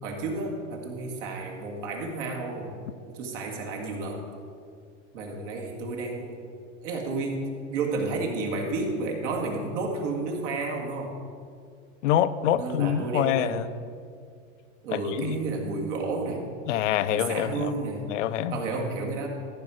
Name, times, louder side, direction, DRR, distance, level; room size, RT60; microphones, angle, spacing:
voice 1, 0.0-2.7 3.1-4.2 5.1-6.5 6.8-11.2 12.6-13.6 14.8-16.5 17.1-18.1 18.5-19.3, right 3 dB, 65° right, 0 dB, 2.2 m, -31 dB
voice 2, 12.0-13.7 14.9-15.4 16.7-17.7 18.1-18.6, left 11 dB, 65° left, 13 dB, 0.6 m, -25 dB
14.0 x 5.0 x 6.3 m, 2.2 s
supercardioid pair, 145°, 39 cm